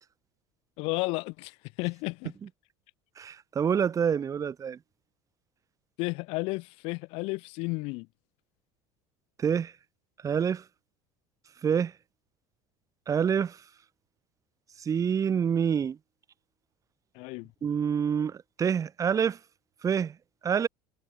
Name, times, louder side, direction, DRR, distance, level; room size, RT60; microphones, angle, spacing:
voice 1, 0.8-2.3 6.0-8.1 17.2-17.5, left 27 dB, 70° left, 2.6 m, -32 dB
voice 2, 3.2-4.8 9.4-9.7 10.2-10.6 11.6-11.9 13.1-13.6 14.8-16.0 17.6-19.4 19.8-20.1 20.4-20.7, right 7 dB, 35° right, 2.6 m, -27 dB
supercardioid pair, 95°, 10 cm